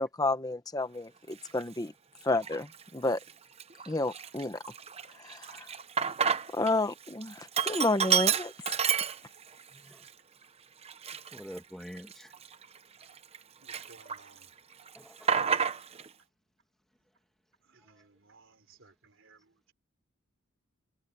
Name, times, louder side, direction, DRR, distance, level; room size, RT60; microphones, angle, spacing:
voice 1, 0.0-1.9 2.2-3.2 3.9-4.6 5.2-5.7 6.5-8.5, left 2 dB, 20° left, 1.0 m, -31 dB
Sink (filling or washing), 1.5-1.6 2.3-2.8 3.2-3.3 3.6-6.7 7.0-9.6 10.0-10.1 10.8-13.4 13.7-14.5 14.7-16.1, right 7 dB, 30° right, 0.9 m, -30 dB
voice 2, 9.7-10.1 11.3-12.3 14.9-15.5, equal, ahead, 1.3 m, -46 dB
voice 3, 13.6-14.5 17.8-19.4, right 3 dB, 70° right, 3.8 m, -59 dB
head